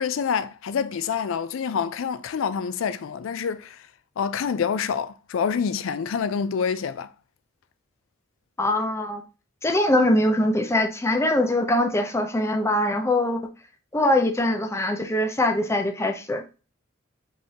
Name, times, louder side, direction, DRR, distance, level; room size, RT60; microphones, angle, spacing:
voice 1, 0.0-3.9 4.2-7.1, left 6 dB, 70° left, 0.4 m, -27 dB
voice 2, 8.6-9.2 9.6-13.4 13.9-16.4, left 1 dB, 15° left, 0.6 m, -22 dB
5.3 x 3.6 x 2.8 m
head